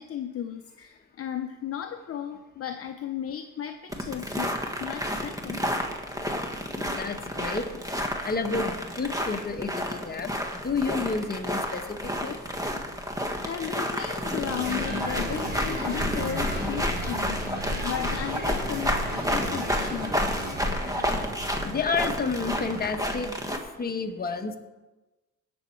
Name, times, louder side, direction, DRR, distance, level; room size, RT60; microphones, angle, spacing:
voice 1, 0.0-5.6 13.4-17.5 17.8-20.3, left 9 dB, 50° left, 6 dB, 0.7 m, -35 dB
sound 1, 3.9-23.6, equal, 10° right, 1.5 m, -30 dB
voice 2, 6.8-7.7 8.2-12.4 21.6-23.4 23.8-24.6, left 4 dB, 30° left, 5 dB, 1.2 m, -30 dB
sound 2, 14.5-23.0, right 1 dB, 35° right, 3.4 m, -36 dB
17.5 x 6.4 x 4.5 m, 1.1 s
cardioid pair, 90°, 30 cm